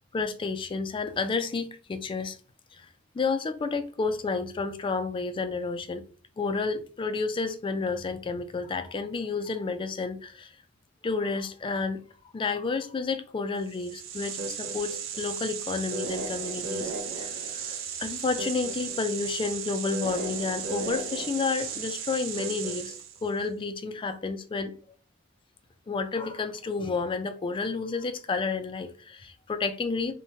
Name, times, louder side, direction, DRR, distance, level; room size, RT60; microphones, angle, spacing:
voice 1, 0.1-2.4 2.8-2.9 3.1-6.0 6.4-10.5 11.0-12.0 12.3-23.0 23.2-24.7 25.9-30.1, left 4 dB, 25° left, 0.3 m, -31 dB
sound 1, 13.7-23.3, right 5 dB, 75° right, 0.5 m, -35 dB
2.9 x 2.1 x 2.7 m
head